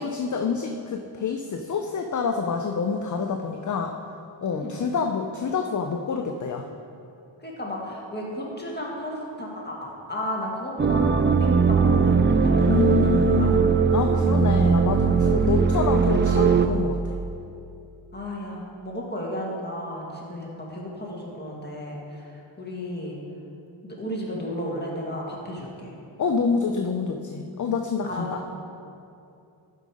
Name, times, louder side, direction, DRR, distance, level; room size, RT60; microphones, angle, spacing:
voice 1, 0.0-3.9 4.4-6.7 12.6-17.2 26.2-28.4, left 5 dB, 40° left, 4 dB, 0.5 m, -27 dB
voice 2, 7.4-12.1 12.4-13.5 18.1-22.3 22.6-23.2 23.8-25.9 28.0-28.5, equal, 20° left, -3 dB, 1.9 m, -33 dB
sound 1, 10.8-16.7, right 5 dB, 25° right, 0.3 m, -19 dB
11.5 x 5.3 x 4.9 m, 2.7 s
wide cardioid pair, 95°, 48 cm